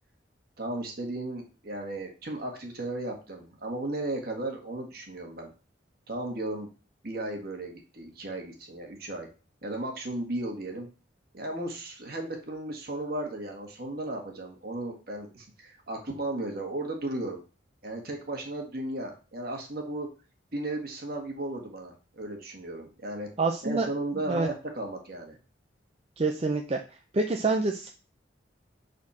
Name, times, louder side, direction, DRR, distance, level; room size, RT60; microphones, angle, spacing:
voice 1, 0.6-5.5 6.1-6.7 7.0-9.3 9.6-10.9 11.3-17.4 17.8-20.1 20.5-23.3 23.6-25.4, right 1 dB, 55° right, 2 dB, 1.7 m, -35 dB
voice 2, 23.4-23.9 24.3-24.5 26.2-26.8 27.1-27.9, right 3 dB, 35° right, 3 dB, 0.5 m, -26 dB
6.4 x 4.2 x 4.2 m, 0.35 s
head